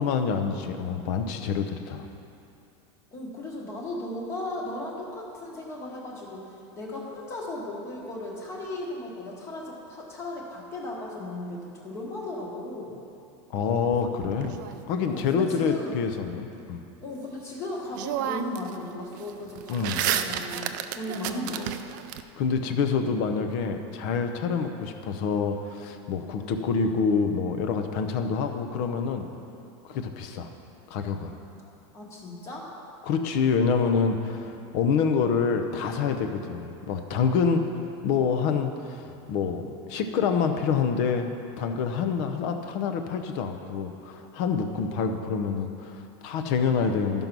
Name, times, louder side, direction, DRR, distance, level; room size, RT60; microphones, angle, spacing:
voice 1, 0.0-2.0 13.5-14.6 14.9-16.8 19.7-20.0 22.4-29.3 29.8-30.5 30.9-31.3 33.0-37.7 38.0-47.2, left 5 dB, 40° left, 6 dB, 0.7 m, -27 dB
voice 2, 3.1-6.5 6.8-13.0 15.1-16.0 17.0-21.7 31.6-32.7, left 1 dB, 20° left, -2 dB, 1.3 m, -36 dB
sound 1, 13.9-15.2 17.4-17.5 17.9-18.7 19.0-22.2, right 10 dB, 40° right, 0.4 m, -31 dB
12.5 x 5.3 x 6.0 m, 2.6 s
supercardioid pair, 175°, 15 cm